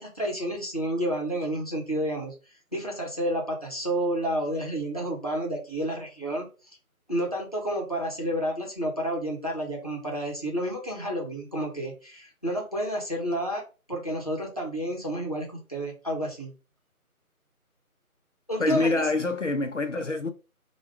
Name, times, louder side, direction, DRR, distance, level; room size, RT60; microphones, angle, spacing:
voice 1, 0.0-2.3 2.7-6.5 7.1-16.5 18.5-19.1, right 1 dB, 25° left, 0.9 m, -30 dB
voice 2, 18.6-20.3, left 3 dB, 55° left, 0.6 m, -26 dB
4.4 x 2.3 x 3.5 m
figure-of-eight pair, 170°, 44 cm